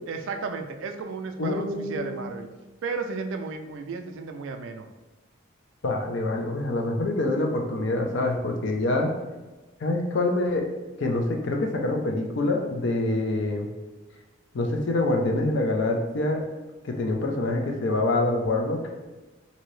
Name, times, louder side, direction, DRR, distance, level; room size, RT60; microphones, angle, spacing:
voice 1, 0.1-2.5 2.8-4.9, right 4 dB, 65° right, 7 dB, 0.3 m, -33 dB
voice 2, 1.4-2.3 5.8-9.1 9.8-10.7 11.0-13.7 14.5-16.4 16.8-19.0, left 2 dB, 60° left, 3 dB, 0.5 m, -26 dB
2.8 x 2.6 x 3.1 m, 1.1 s
head